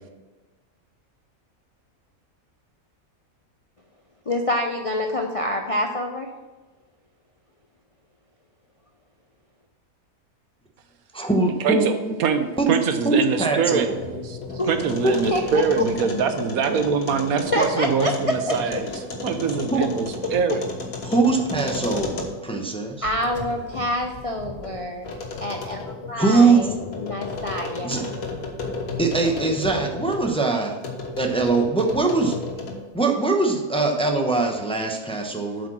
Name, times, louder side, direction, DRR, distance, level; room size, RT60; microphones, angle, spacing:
voice 1, 4.3-6.3 14.6-14.7 15.3-15.8 17.5-18.5 19.8-19.9 23.0-25.1 25.4-28.1, left 1 dB, 45° left, 2 dB, 0.4 m, -26 dB
voice 2, 11.1-11.9 12.6-12.7 13.0-14.0 15.0-15.2 19.7-19.8 21.0-23.0 26.2-26.7 27.8-28.0 29.0-30.8 31.2-32.4 32.9-35.7, right 3 dB, 5° left, 2 dB, 0.6 m, -21 dB
voice 3, 11.6-13.9 14.2-14.4 14.7-18.9 19.2-20.6, right 6 dB, 85° right, 8 dB, 1.3 m, -23 dB
sound 1, 13.6-22.6 23.0-30.3 30.8-32.9, left 3 dB, 90° left, 1.7 m, -33 dB
7.9 x 5.1 x 6.0 m, 1.2 s
omnidirectional pair, 1.5 m